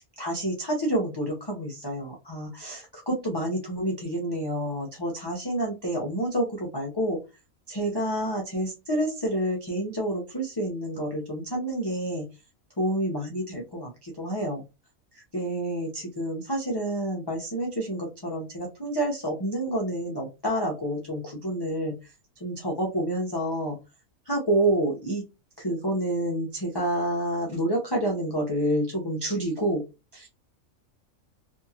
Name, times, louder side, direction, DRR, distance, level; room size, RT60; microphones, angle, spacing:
voice 1, 0.2-7.2 7.7-12.3 12.8-14.6 15.1-21.9 22.4-23.8 24.3-25.2 25.6-29.8 30.1-30.3, right 1 dB, 30° left, -2 dB, 0.4 m, -28 dB
2.8 x 2.7 x 2.3 m, 0.26 s
omnidirectional pair, 1.4 m